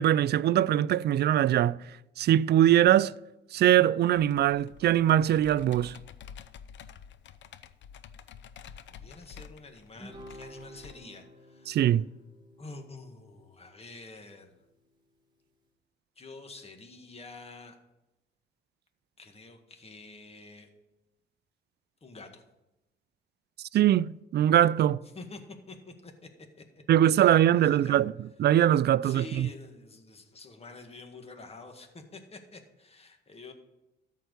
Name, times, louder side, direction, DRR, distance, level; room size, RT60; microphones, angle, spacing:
voice 1, 0.0-1.8 2.2-3.1 3.5-6.0 11.7-12.1 23.7-25.0 26.9-28.1 28.4-29.5, right 11 dB, 55° right, 0.4 m, -22 dB
Computer keyboard, 4.2-10.9, left 8 dB, 65° left, 0.7 m, -49 dB
voice 2, 8.9-12.0 12.6-14.6 16.2-17.8 19.2-20.7 22.0-22.4 25.1-26.3 26.6-26.8 27.2-28.0 29.0-33.5, left 3 dB, 30° left, 1.8 m, -47 dB
Guitar, 9.9-14.6, equal, 25° right, 2.8 m, -52 dB
13.5 x 4.7 x 8.2 m
cardioid pair, 90°, 20 cm